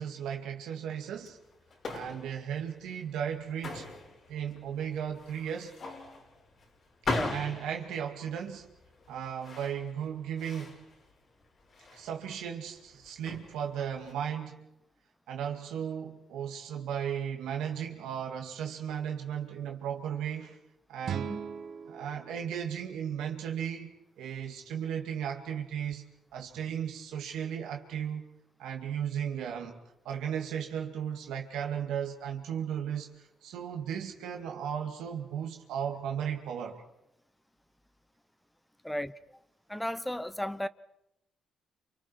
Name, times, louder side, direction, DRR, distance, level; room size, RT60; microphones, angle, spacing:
voice 1, 0.0-1.4 1.9-3.9 4.3-5.7 7.3-8.7 9.1-10.8 11.9-14.7 15.3-20.6 20.9-21.3 21.9-23.9 24.2-26.0 26.3-28.2 28.6-29.8 30.0-33.1 33.4-36.8, right 8 dB, 85° right, 2.3 m, -35 dB
sound 1, 1.1-14.1, left 3 dB, 50° left, 6.0 m, -41 dB
voice 2, 7.1-7.4 21.1-21.4 38.8-39.4 39.7-40.7, equal, 5° left, 1.0 m, -35 dB
sound 2, 21.0-24.1, right 8 dB, 65° right, 1.1 m, -41 dB
29.5 x 28.0 x 4.7 m
cardioid pair, 90°, 0 cm